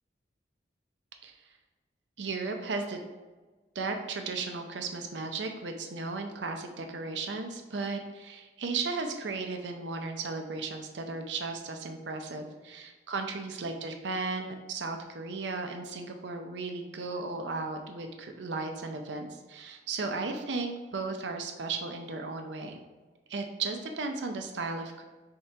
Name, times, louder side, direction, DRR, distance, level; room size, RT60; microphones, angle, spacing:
voice 1, 2.2-3.0 3.7-22.8 23.3-25.0, right 3 dB, 85° right, 5 dB, 0.6 m, -35 dB
4.3 x 3.7 x 3.3 m, 1.2 s
head